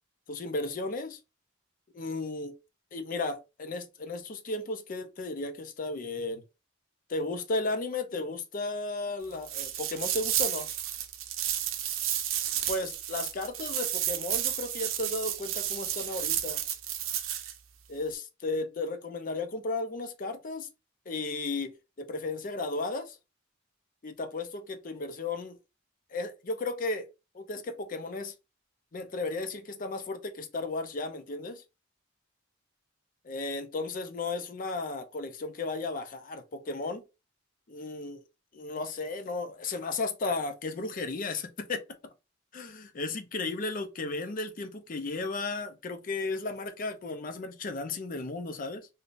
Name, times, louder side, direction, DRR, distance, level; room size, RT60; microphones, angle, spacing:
voice 1, 0.3-1.2 1.9-2.5 2.9-6.4 7.1-10.7 12.7-16.6 17.9-20.7 21.1-23.2 24.0-25.6 26.1-27.1 27.3-28.3 28.9-31.6 33.3-37.0 37.7-38.2 38.5-41.8 42.5-48.9, left 3 dB, 45° left, 0.5 m, -34 dB
sound 1, 9.4-17.5, right 11 dB, 90° right, 0.5 m, -32 dB
3.5 x 2.7 x 2.5 m
head